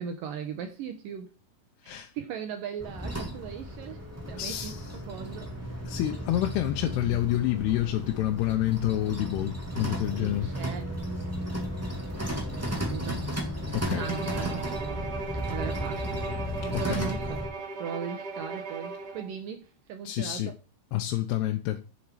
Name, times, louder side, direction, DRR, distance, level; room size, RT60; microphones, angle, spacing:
voice 1, 0.0-1.3 1.8-4.7 5.1-5.5 10.2-10.8 12.5-13.2 14.0-15.0 15.3-16.2 16.8-17.4 17.8-20.5, right 7 dB, 70° right, 2.3 m, -38 dB
sound 1, 2.8-17.5, equal, 5° right, 1.2 m, -34 dB
voice 2, 4.4-4.9 5.8-10.5 13.7-14.1 16.7-17.1 20.0-20.5 20.9-21.8, left 14 dB, 90° left, 2.8 m, -28 dB
Bowed string instrument, 14.0-19.3, right 4 dB, 40° right, 1.5 m, -37 dB
7.3 x 7.1 x 4.8 m
omnidirectional pair, 4.6 m